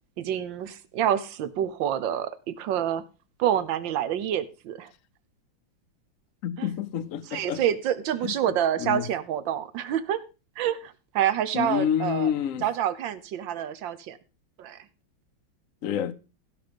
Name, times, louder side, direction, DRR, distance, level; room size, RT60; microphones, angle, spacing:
voice 1, 0.2-3.0 3.4-4.9 6.6-6.7 7.3-10.2 10.6-12.3 12.6-14.2 14.6-14.8, right 10 dB, 70° right, 1.6 m, -27 dB
voice 2, 6.4-7.6 8.2-8.3 8.8-9.1 11.5-12.7 15.8-16.1, left 9 dB, 60° left, 0.8 m, -28 dB
15.5 x 6.0 x 5.2 m
omnidirectional pair, 2.2 m